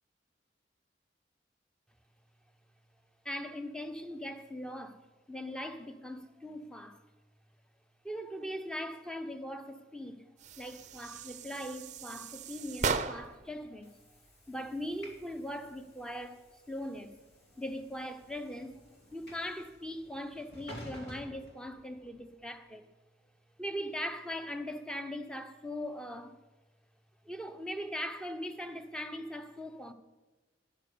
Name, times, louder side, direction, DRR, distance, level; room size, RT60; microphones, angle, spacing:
voice 1, 3.2-5.0 5.3-7.0 8.0-10.2 10.6-13.9 14.5-17.1 17.6-18.8 19.1-22.9 23.6-26.4 27.2-29.9, equal, 5° left, 0.9 m, -40 dB
sound 1, 10.4-13.5, right 5 dB, 40° right, 0.6 m, -37 dB
Train / Sliding door, 13.0-22.3, equal, 65° left, 2.9 m, -53 dB
12.0 x 10.5 x 6.8 m
head